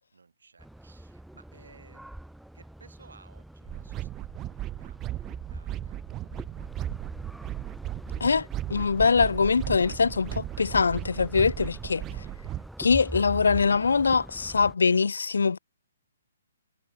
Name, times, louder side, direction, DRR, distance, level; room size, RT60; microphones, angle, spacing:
voice 1, 0.0-2.1 2.5-6.7, right 4 dB, 90° right, 7.7 m, -58 dB
sound 1, 0.6-14.7, right 1 dB, ahead, 1.3 m, -44 dB
sound 2, 3.7-12.7, right 14 dB, 20° right, 0.6 m, -36 dB
voice 2, 8.2-12.0 12.8-15.6, left 5 dB, 85° left, 0.5 m, -23 dB
hypercardioid pair, 150°, 0 cm